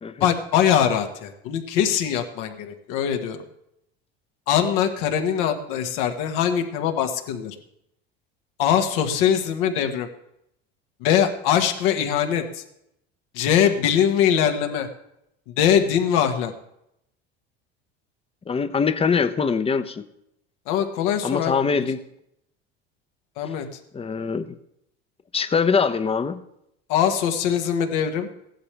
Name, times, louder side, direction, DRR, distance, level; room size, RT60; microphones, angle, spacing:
voice 1, 0.2-3.4 4.5-7.5 8.6-10.1 11.0-12.6 13.3-14.9 15.6-16.5 20.7-21.7 23.4-23.7 26.9-28.3, left 9 dB, 75° left, 5 dB, 1.7 m, -22 dB
voice 2, 18.5-20.0 21.2-22.0 23.9-24.5 25.3-26.4, left 5 dB, 20° left, 11 dB, 0.8 m, -23 dB
16.0 x 11.0 x 3.4 m, 0.79 s
supercardioid pair, 95°, 29 cm